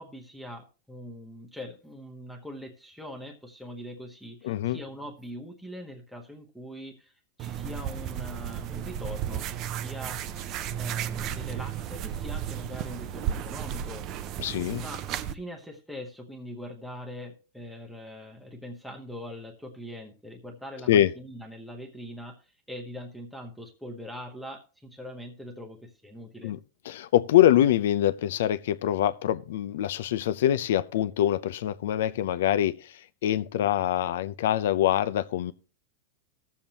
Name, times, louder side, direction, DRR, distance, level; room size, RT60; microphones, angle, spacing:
voice 1, 0.0-7.1 7.4-10.2 10.8-14.0 14.8-22.4 22.7-26.5, equal, ahead, 0.9 m, -42 dB
voice 2, 4.4-4.8 14.4-14.8 20.9-21.1 26.4-26.6 26.9-35.5, left 12 dB, 75° left, 0.5 m, -24 dB
sound 1, 7.4-15.3, right 10 dB, 35° right, 0.5 m, -34 dB
17.5 x 7.2 x 2.9 m
supercardioid pair, 160°, 0 cm